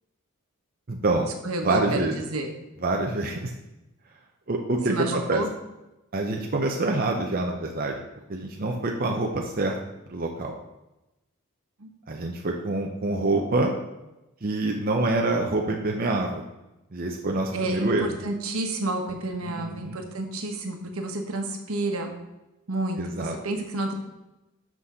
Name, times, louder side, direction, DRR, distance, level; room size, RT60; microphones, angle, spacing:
voice 1, 0.9-1.3 1.6-2.2 2.8-3.5 4.5-5.4 6.1-8.0 8.3-9.7 10.1-10.5 12.1-13.7 14.4-16.4 16.9-18.1 19.4-20.0 23.0-23.3, right 2 dB, 45° right, 1 dB, 0.7 m, -26 dB
voice 2, 1.4-2.5 4.9-5.5 11.8-11.9 17.5-22.1 22.7-23.9, right 2 dB, 75° right, 4 dB, 1.2 m, -30 dB
6.1 x 6.1 x 5.5 m, 0.97 s
head